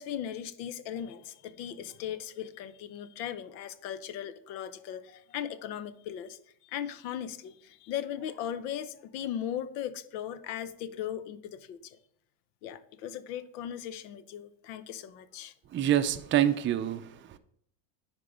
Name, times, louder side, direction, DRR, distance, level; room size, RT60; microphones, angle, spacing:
voice 1, 0.0-12.0 12.6-15.5, left 10 dB, 80° left, 0.9 m, -38 dB
voice 2, 15.7-17.4, right 11 dB, 25° right, 0.5 m, -27 dB
9.9 x 3.8 x 4.9 m
supercardioid pair, 110°, 50 cm